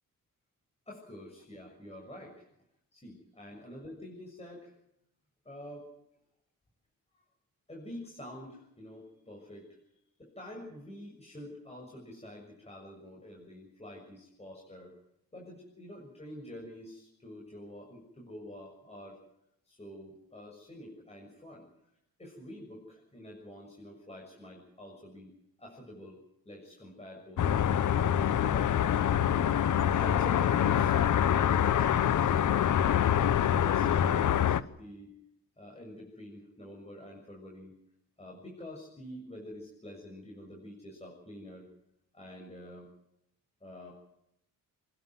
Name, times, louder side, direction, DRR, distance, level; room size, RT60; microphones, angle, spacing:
voice 1, 0.9-2.5 2.9-4.7 5.4-5.9 7.7-9.7 10.2-14.9 15.3-19.2 19.6-21.6 22.2-25.3 25.6-26.2 26.4-29.0 29.4-32.3 32.8-35.1 35.6-37.7 38.2-41.7 42.1-42.9 43.6-43.9, left 1 dB, 20° left, -2 dB, 6.8 m, -47 dB
sound 1, 27.4-34.6, left 10 dB, 65° left, 1.0 m, -25 dB
27.0 x 12.0 x 9.3 m, 0.77 s
cardioid pair, 90°, 33 cm